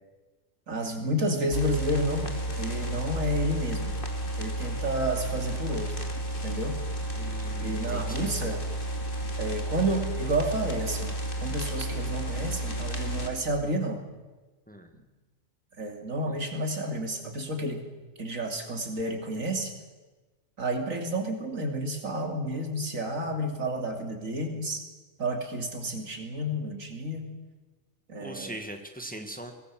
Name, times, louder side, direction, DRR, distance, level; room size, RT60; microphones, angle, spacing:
voice 1, 0.7-2.3 2.5-3.9 4.4-6.0 6.4-6.8 7.6-8.6 9.4-11.1 11.4-14.0 15.8-17.8 18.2-19.7 20.6-24.8 25.2-27.3 28.1-28.5, right 1 dB, 80° right, 4 dB, 3.2 m, -30 dB
sound 1, 1.5-13.3, right 1 dB, 40° left, 2.7 m, -32 dB
voice 2, 7.2-8.4 14.7-14.9 28.2-29.5, right 1 dB, 5° left, 5 dB, 1.7 m, -40 dB
22.5 x 18.0 x 7.6 m, 1.2 s
omnidirectional pair, 1.4 m